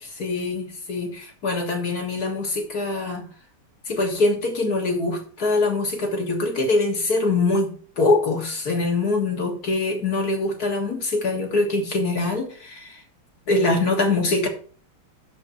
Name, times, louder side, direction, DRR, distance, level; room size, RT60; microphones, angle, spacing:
voice 1, 0.0-3.3 3.9-13.0 13.5-14.5, left 3 dB, 45° left, 2.0 m, -23 dB
6.8 x 5.7 x 7.1 m
omnidirectional pair, 2.4 m